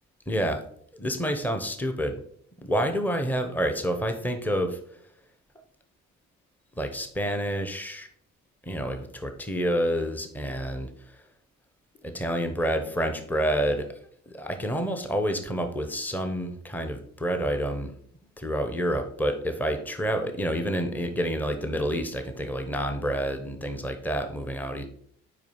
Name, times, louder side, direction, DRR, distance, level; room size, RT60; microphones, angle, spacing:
voice 1, 0.3-0.6 0.9-2.2 2.6-4.8 6.8-8.1 8.6-10.9 12.0-13.9 14.3-17.9 18.4-24.9, equal, 5° left, 6 dB, 0.9 m, -28 dB
4.9 x 4.8 x 5.4 m, 0.64 s
cardioid pair, 90°, 30 cm